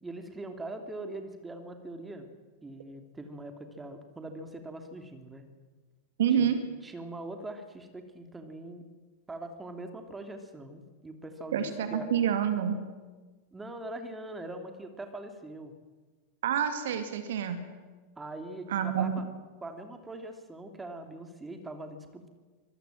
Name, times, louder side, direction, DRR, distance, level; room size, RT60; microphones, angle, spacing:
voice 1, 0.0-2.3 2.6-5.4 6.3-6.5 6.8-8.8 9.3-12.1 13.5-15.7 18.2-19.2 19.6-22.3, right 2 dB, 10° right, 6 dB, 2.9 m, -42 dB
voice 2, 6.2-6.6 11.5-12.7 16.4-17.6 18.7-19.2, right 8 dB, 60° right, 9 dB, 2.2 m, -27 dB
25.0 x 19.5 x 7.7 m, 1.4 s
figure-of-eight pair, 90°, 0 cm